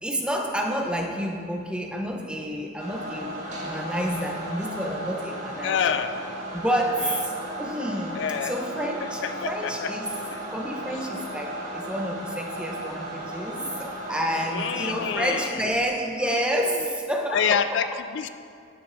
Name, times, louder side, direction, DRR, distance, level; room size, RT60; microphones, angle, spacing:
voice 1, 0.0-6.0 6.5-7.3 7.6-10.1 10.5-17.8, equal, 5° right, 1 dB, 0.7 m, -29 dB
sound 1, 2.8-15.4, right 1 dB, 40° right, 1.7 m, -35 dB
voice 2, 5.6-6.1 7.0-7.3 8.1-8.5 9.0-9.9 10.3-10.4 10.9-11.0 14.5-15.6 16.2-16.6 17.3-18.3, left 7 dB, 65° left, 10 dB, 0.3 m, -28 dB
11.0 x 10.0 x 2.6 m, 2.4 s
head